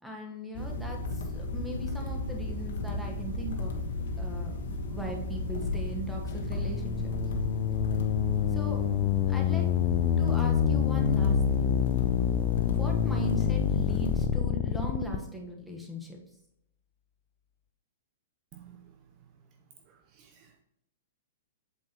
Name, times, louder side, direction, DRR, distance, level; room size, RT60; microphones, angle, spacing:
voice 1, 0.0-3.7 4.2-7.1 8.5-8.8 9.3-9.7 10.2-11.8 12.6-16.2, right 1 dB, ahead, 0 dB, 1.2 m, -39 dB
sound 1, 0.5-14.2, left 2 dB, 70° left, 1.2 m, -34 dB
sound 2, 6.4-15.2, left 10 dB, 35° left, 0.4 m, -27 dB
voice 2, 18.5-18.8 20.2-20.6, right 10 dB, 35° right, 6 dB, 0.6 m, -53 dB
7.9 x 4.6 x 3.0 m, 0.78 s
hypercardioid pair, 135°, 0 cm